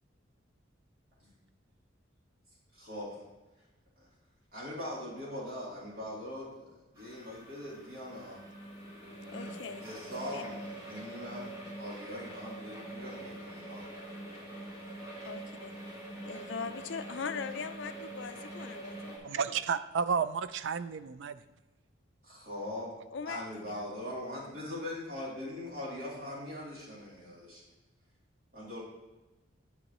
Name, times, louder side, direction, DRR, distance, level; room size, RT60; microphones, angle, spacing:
voice 1, 2.7-3.1 4.5-8.4 9.8-13.9 22.2-22.9 23.2-27.6 28.5-28.8, left 1 dB, 50° right, -6 dB, 2.9 m, -41 dB
sound 1, 7.0-19.2, right 1 dB, 15° right, 1.5 m, -44 dB
voice 2, 9.3-9.8 10.3-10.4 15.2-15.7 16.3-19.6 23.1-23.9, left 5 dB, 65° left, 10 dB, 0.5 m, -41 dB
voice 3, 19.2-21.4, right 6 dB, 65° right, 13 dB, 0.4 m, -32 dB
9.7 x 6.5 x 3.0 m, 1.1 s
head